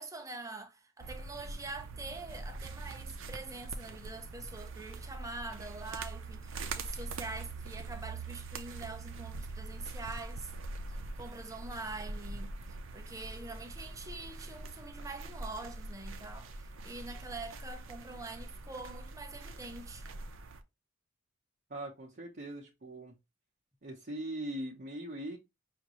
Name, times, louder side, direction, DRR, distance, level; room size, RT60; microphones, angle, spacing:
voice 1, 0.0-10.5 10.9-20.1, right 3 dB, 15° right, 0.6 m, -45 dB
sound 1, 1.0-20.6, right 3 dB, 70° right, 0.6 m, -43 dB
voice 2, 21.7-23.1 23.8-25.4, right 1 dB, 45° right, 0.9 m, -41 dB
5.8 x 2.6 x 3.0 m
head